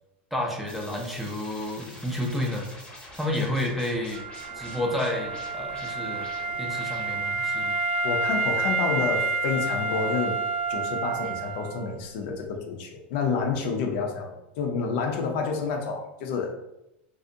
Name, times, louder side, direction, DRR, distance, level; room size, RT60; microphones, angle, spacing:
voice 1, 0.3-2.7 3.1-4.2 4.6-6.3 6.6-7.7, left 1 dB, ahead, 0 dB, 0.4 m, -30 dB
sound 1, 0.7-7.4, left 1 dB, 15° left, 0.8 m, -46 dB
Wind instrument woodwind instrument, 4.1-11.9, right 3 dB, 85° right, 0.4 m, -29 dB
voice 2, 8.0-10.4 10.7-16.6, left 5 dB, 65° left, 3 dB, 0.5 m, -29 dB
2.5 x 2.0 x 2.6 m, 0.88 s
supercardioid pair, 125°, 6 cm